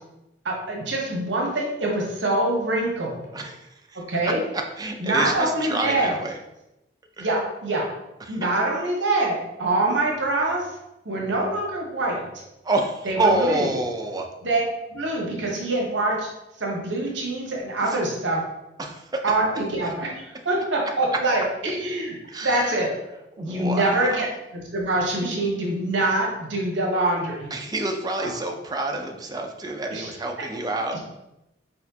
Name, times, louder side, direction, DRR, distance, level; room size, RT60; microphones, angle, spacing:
voice 1, 0.4-3.2 4.1-4.4 5.0-6.1 7.2-7.9 8.3-10.6 11.0-12.2 13.0-13.6 14.4-16.3 16.6-18.4 19.2-22.1 22.4-22.9 23.4-24.3 24.5-27.5 28.2-28.3 29.9-30.1, right 2 dB, 70° right, -2 dB, 1.1 m, -24 dB
voice 2, 3.3-6.4 7.2-7.3 8.2-8.4 12.6-14.3 17.8-18.0 18.8-19.2 19.8-19.9 21.1-21.2 22.3-22.8 23.4-24.4 27.5-31.0, right 2 dB, 20° right, 3 dB, 0.5 m, -28 dB
4.4 x 4.2 x 2.8 m, 0.92 s
head